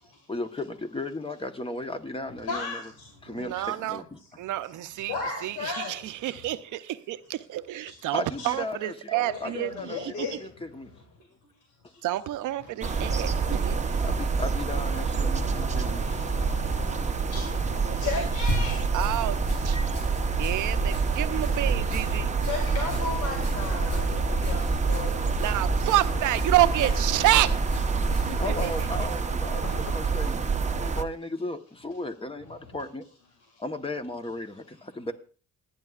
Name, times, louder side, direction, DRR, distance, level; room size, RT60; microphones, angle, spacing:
voice 1, 0.3-2.9 3.2-4.0 8.1-10.9 14.0-16.4 19.7-20.0 28.4-33.1 33.6-35.1, left 1 dB, 20° left, 1.1 m, -36 dB
voice 2, 2.4-3.2 3.5-3.7 5.1-6.3 8.4-8.5 9.3-10.5 12.8-13.4 13.7-14.1 15.4-19.0 22.2-25.4 29.6-29.9 33.5-33.6, left 4 dB, 90° left, 2.2 m, -36 dB
voice 3, 3.3-4.0 4.4-10.3 12.0-13.8 17.9-18.2 18.9-19.8 20.4-22.3 25.4-27.5 28.3-28.7, right 15 dB, 80° right, 0.7 m, -28 dB
sound 1, 12.8-31.0, right 5 dB, 25° right, 0.8 m, -27 dB
sound 2, 18.3-29.0, left 1 dB, 60° left, 7.0 m, -34 dB
28.0 x 9.4 x 2.4 m
cardioid pair, 90°, 30 cm